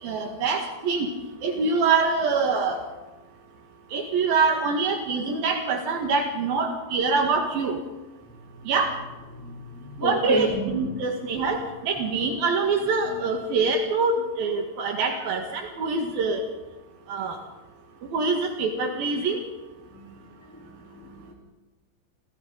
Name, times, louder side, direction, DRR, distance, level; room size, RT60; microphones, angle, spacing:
voice 1, 0.0-1.1 1.4-2.8 3.9-7.8 8.7-8.9 10.0-16.4 17.1-17.4 18.1-19.4, right 4 dB, 80° right, 2 dB, 3.8 m, -25 dB
voice 2, 9.4-10.7 19.9-20.0 20.5-21.3, equal, 5° left, -3 dB, 3.9 m, -31 dB
29.0 x 28.5 x 4.1 m, 1.2 s
omnidirectional pair, 4.1 m